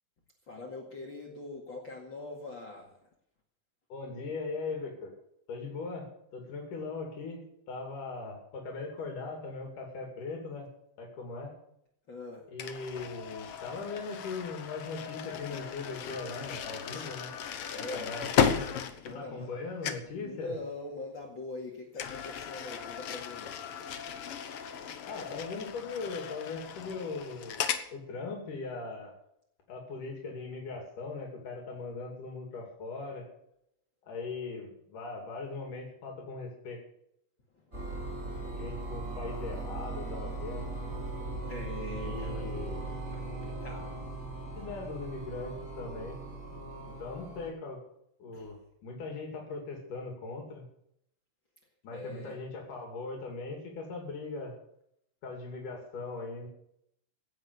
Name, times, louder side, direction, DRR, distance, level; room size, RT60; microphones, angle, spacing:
voice 1, 0.4-3.1 12.1-12.5 17.7-18.1 19.0-19.5 20.2-23.5 37.5-38.2 41.5-42.5 43.1-43.9 48.3-48.6 51.9-52.4, left 2 dB, 40° left, -1 dB, 2.6 m, -43 dB
voice 2, 3.9-5.1 5.5-7.4 7.7-10.7 11.0-11.5 12.5-17.3 17.7-18.5 19.1-20.5 25.1-27.6 27.9-29.2 29.7-33.3 34.0-36.8 38.6-40.7 42.0-42.8 44.6-46.2 46.8-47.8 48.2-50.6 51.8-54.5 55.2-56.5, left 3 dB, 90° left, 1 dB, 4.4 m, -39 dB
sound 1, 12.6-19.6 19.8-20.2 22.0-27.9, left 8 dB, 60° left, 1.6 m, -35 dB
sound 2, 37.7-47.5, right 2 dB, 25° right, 6.6 m, -39 dB
17.0 x 8.0 x 6.9 m, 0.75 s
omnidirectional pair, 3.6 m